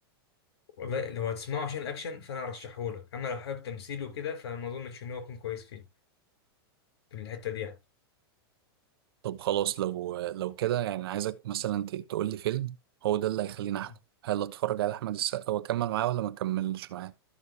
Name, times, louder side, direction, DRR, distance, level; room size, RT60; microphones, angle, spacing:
voice 1, 0.8-5.9 7.1-7.8, left 7 dB, 80° left, 5.0 m, -36 dB
voice 2, 9.2-12.8 13.0-13.9 14.2-17.1, right 13 dB, 65° right, 0.9 m, -30 dB
14.0 x 6.4 x 2.6 m
supercardioid pair, 165°, 13 cm